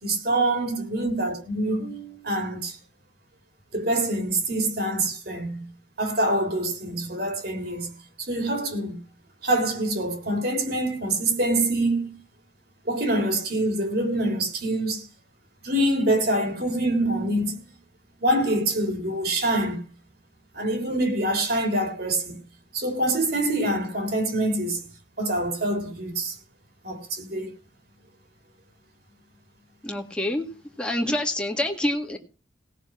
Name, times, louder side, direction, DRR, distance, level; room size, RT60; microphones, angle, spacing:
voice 1, 0.0-2.8 3.7-5.6 6.0-7.9 8.2-9.0 9.4-12.2 12.9-15.1 15.6-17.6 18.2-19.8 20.5-22.4 22.7-24.8 25.2-26.4 26.8-27.5, right 1 dB, 50° right, 3.7 m, -25 dB
voice 2, 29.8-30.5 30.8-32.2, left 1 dB, 5° left, 1.9 m, -26 dB
18.0 x 6.8 x 6.1 m
head